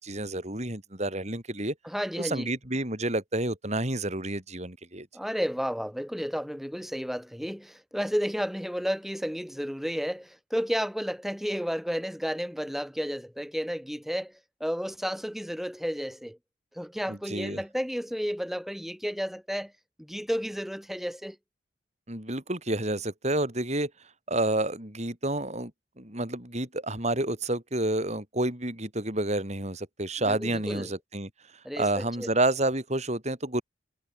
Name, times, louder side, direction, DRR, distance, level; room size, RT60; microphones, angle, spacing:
voice 1, 0.0-1.7 2.2-5.1 17.1-17.6 22.1-23.9 24.3-25.7 26.0-31.3 31.8-33.6, right 1 dB, 35° right, 6.2 m, -29 dB
voice 2, 1.8-2.5 5.1-14.3 14.6-16.4 16.7-19.7 20.0-21.4 30.2-30.9 31.6-32.3, equal, ahead, 5.8 m, -32 dB
head